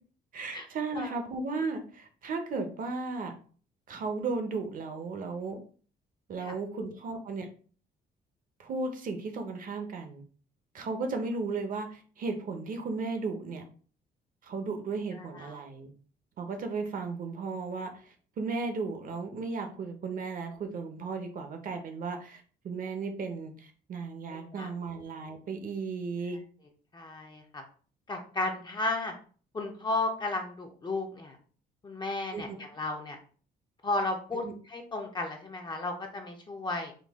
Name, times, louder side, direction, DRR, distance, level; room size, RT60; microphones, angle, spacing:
voice 1, 0.3-3.3 3.9-5.6 6.3-7.5 8.6-10.2 10.7-13.6 14.4-15.9 16.4-26.4 32.3-32.6 34.3-34.5, right 4 dB, 50° right, 6 dB, 0.8 m, -35 dB
voice 2, 6.4-6.9 15.1-15.6 24.3-24.7 26.9-27.6 28.1-29.1 29.5-31.4 31.8-33.2 33.8-36.9, left 2 dB, 25° left, 2 dB, 0.5 m, -34 dB
3.9 x 2.3 x 3.4 m, 0.42 s
cardioid pair, 125°, 18 cm